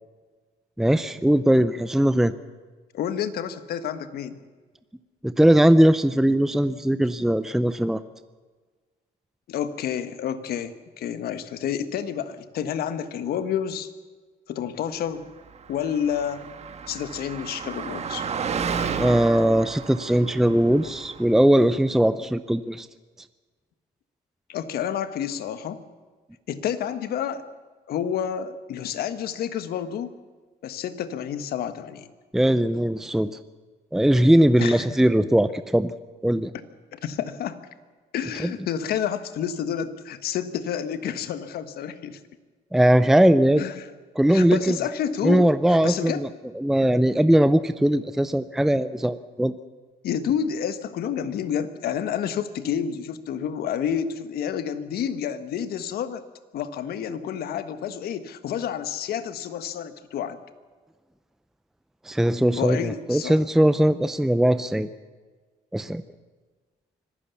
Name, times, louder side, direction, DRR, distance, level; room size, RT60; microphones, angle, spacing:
voice 1, 0.8-2.3 5.2-8.0 19.0-22.9 32.3-33.3 33.9-35.9 36.2-36.5 38.4-38.5 42.7-43.6 44.2-44.8 45.2-46.3 46.5-49.5 62.1-64.9 65.7-66.0, right 1 dB, ahead, 12 dB, 0.6 m, -20 dB
voice 2, 2.9-4.4 9.5-13.9 14.5-15.3 15.7-16.5 16.9-18.2 24.5-25.8 26.5-27.4 27.9-30.1 30.6-32.1 34.6-34.8 36.9-37.6 38.1-42.2 43.6-43.9 44.3-46.2 50.0-56.2 56.5-60.4 62.6-63.4, left 8 dB, 65° left, 11 dB, 1.5 m, -29 dB
Car passing by, 15.5-21.5, right 6 dB, 40° right, 1.6 m, -32 dB
25.0 x 15.5 x 7.1 m, 1.4 s
cardioid pair, 110°, 17 cm